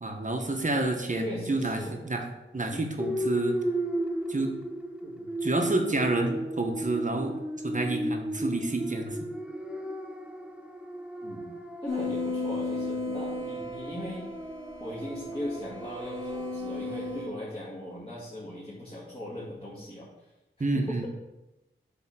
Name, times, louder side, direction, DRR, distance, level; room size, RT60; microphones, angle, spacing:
voice 1, 0.0-2.2 2.5-3.6 4.3-4.5 5.4-7.3 7.6-9.2 20.6-21.1, right 2 dB, 40° right, 3 dB, 1.2 m, -29 dB
voice 2, 1.1-2.0 2.7-2.9 5.0-5.3 11.2-11.5 11.8-14.3 14.8-20.1 20.7-21.1, left 1 dB, 25° left, -7 dB, 2.0 m, -39 dB
sound 1, 3.0-17.2, right 1 dB, 5° right, 0.7 m, -35 dB
sound 2, 11.9-17.3, left 3 dB, 60° left, 1.8 m, -35 dB
7.7 x 3.6 x 6.0 m, 1.0 s
wide cardioid pair, 55°, 21 cm